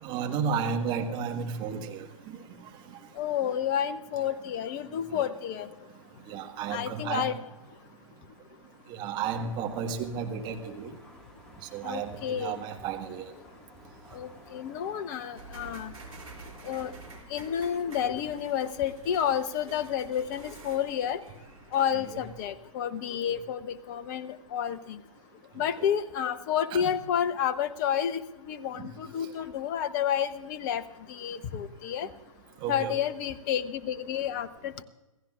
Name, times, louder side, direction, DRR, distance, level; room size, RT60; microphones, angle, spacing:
voice 1, 0.0-2.4 5.1-5.3 6.3-7.3 8.9-10.9 11.6-13.3 22.1-22.2 25.8-25.9 26.7-26.8 28.8-28.9 32.6-32.9, right 6 dB, 25° right, 3 dB, 1.6 m, -33 dB
voice 2, 3.2-5.7 6.7-7.3 11.8-12.6 14.1-15.9 16.7-16.9 17.3-21.2 21.7-25.0 25.6-28.2 28.5-30.8 31.1-32.1 32.7-34.8, left 9 dB, 30° left, 14 dB, 0.8 m, -30 dB
sound 1, 9.2-17.2, right 1 dB, 5° left, 1.9 m, -52 dB
sound 2, 15.4-22.4, right 3 dB, 75° right, 3.4 m, -49 dB
27.0 x 16.0 x 2.5 m, 1.1 s
figure-of-eight pair, 120°, 18 cm